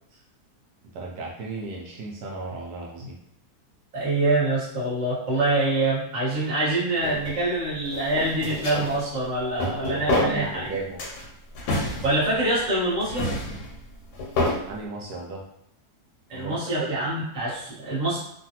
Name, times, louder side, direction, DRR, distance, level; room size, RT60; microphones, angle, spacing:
voice 1, 0.9-3.2 9.9-11.0 14.7-15.4 16.3-16.9, right 3 dB, 80° right, -2 dB, 1.1 m, -34 dB
voice 2, 3.9-10.7 12.0-13.3 16.3-18.2, right 2 dB, 30° right, -8 dB, 1.1 m, -25 dB
sound 1, 7.0-7.4 7.8-9.0 9.4-10.7 11.0-12.6 13.0-14.6, left 2 dB, 80° left, 1.2 m, -28 dB
3.2 x 2.3 x 2.8 m, 0.73 s
omnidirectional pair, 1.7 m